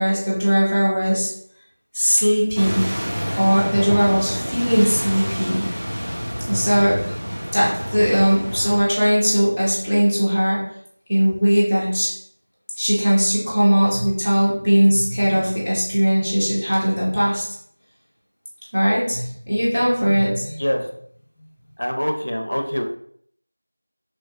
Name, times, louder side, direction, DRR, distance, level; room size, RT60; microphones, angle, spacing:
voice 1, 0.0-1.3 1.9-2.9 3.3-5.7 6.5-7.2 7.5-10.7 11.1-12.2 12.8-17.5 18.7-20.6, equal, ahead, -14 dB, 0.4 m, -19 dB
sound 1, 2.5-8.8, equal, 75° right, 0.9 m, -28 dB
voice 2, 20.6-20.9 21.8-22.8, equal, 60° left, 3 dB, 0.4 m, -24 dB
3.0 x 2.4 x 2.3 m, 0.63 s
figure-of-eight pair, 175°, 0 cm